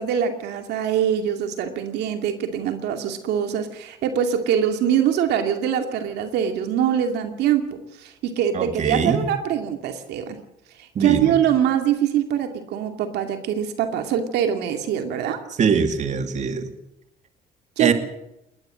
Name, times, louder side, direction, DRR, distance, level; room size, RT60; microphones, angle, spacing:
voice 1, 0.0-7.6 8.0-10.4 10.8-15.4 17.8-17.9, right 9 dB, 80° right, 6 dB, 2.5 m, -23 dB
voice 2, 8.5-9.2 10.9-11.4 15.6-16.7 17.8-17.9, right 6 dB, 45° right, 7 dB, 2.7 m, -22 dB
20.5 x 19.5 x 7.6 m, 0.84 s
cardioid pair, 110°, 17 cm